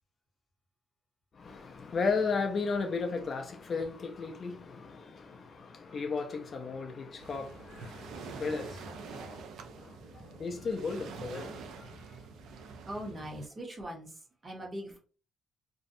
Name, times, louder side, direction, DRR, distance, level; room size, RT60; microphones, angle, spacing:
voice 1, 1.4-9.4 9.8-10.0 10.4-11.6, left 4 dB, 35° left, 0.3 m, -35 dB
Waves surf, 7.2-13.5, right 5 dB, 70° right, 0.4 m, -46 dB
voice 2, 12.9-15.0, equal, 25° right, 0.6 m, -41 dB
2.5 x 2.1 x 2.5 m
cardioid pair, 160°, 0 cm